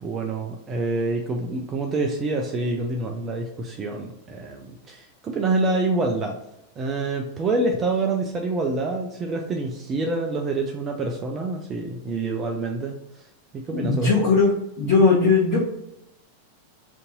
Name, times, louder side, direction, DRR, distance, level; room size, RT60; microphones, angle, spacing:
voice 1, 0.0-6.4 6.8-13.3 13.5-14.2, right 2 dB, 25° right, 2 dB, 0.4 m, -27 dB
voice 2, 13.7-15.6, left 4 dB, 40° left, -7 dB, 1.0 m, -19 dB
2.6 x 2.6 x 3.7 m, 0.83 s
figure-of-eight pair, 90°, 0 cm